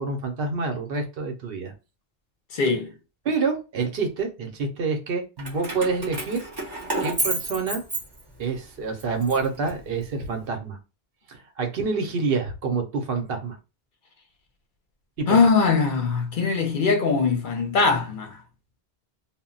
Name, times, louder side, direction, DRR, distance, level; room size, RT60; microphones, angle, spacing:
voice 1, 0.0-1.7 3.2-6.5 7.0-7.8 8.4-10.8 11.3-13.6 15.2-15.4, right 4 dB, 70° right, 0.9 m, -27 dB
voice 2, 2.5-2.9 15.3-18.4, left 4 dB, 60° left, 0.7 m, -21 dB
Keys jangling, 5.4-8.6 9.0-10.3, right 2 dB, 25° right, 0.7 m, -31 dB
2.1 x 2.1 x 3.7 m
omnidirectional pair, 1.1 m